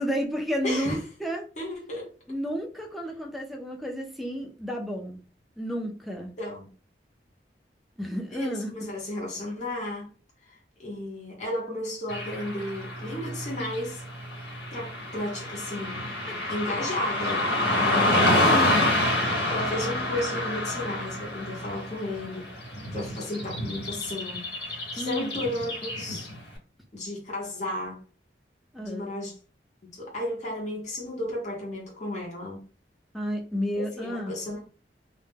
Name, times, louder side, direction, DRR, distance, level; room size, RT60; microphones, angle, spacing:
voice 1, 0.0-1.4 2.3-5.2 5.6-6.3 8.0-8.9 16.3-16.4 18.5-18.9 25.0-25.3 28.7-29.1 33.1-34.3, equal, ahead, 0.4 m, -31 dB
voice 2, 0.6-1.0 1.6-2.1 6.4-6.7 8.3-10.1 10.5-14.0 14.7-16.1 16.5-18.3 19.5-22.5 22.9-26.3 26.9-28.0 28.8-29.3 29.9-32.6 33.7-34.6, left 1 dB, 40° left, 0.7 m, -33 dB
Car passing by / Traffic noise roadway noise, 12.1-26.4, left 1 dB, 70° left, 1.2 m, -28 dB
2.1 x 2.1 x 3.2 m
head